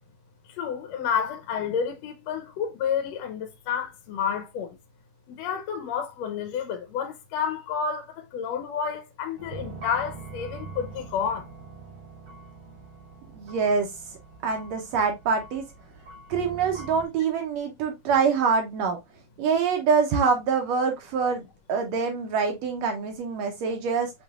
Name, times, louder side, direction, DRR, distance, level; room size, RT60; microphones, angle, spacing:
voice 1, 0.5-4.8 5.3-11.5, left 7 dB, 75° left, 1.7 m, -30 dB
sound 1, 9.4-17.1, right 3 dB, 30° right, 2.8 m, -43 dB
voice 2, 13.3-13.9 14.4-15.6 16.3-19.0 19.4-24.1, right 5 dB, 75° right, 1.6 m, -25 dB
6.1 x 3.2 x 2.3 m
omnidirectional pair, 3.5 m